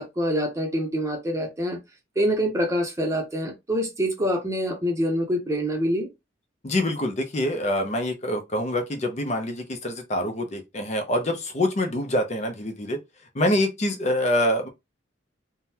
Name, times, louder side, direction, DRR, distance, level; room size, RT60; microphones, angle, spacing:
voice 1, 0.0-1.8 2.2-6.1, equal, 15° right, 0.7 m, -25 dB
voice 2, 6.6-13.0 13.3-14.7, left 1 dB, 35° left, 0.6 m, -25 dB
3.7 x 2.1 x 2.8 m
head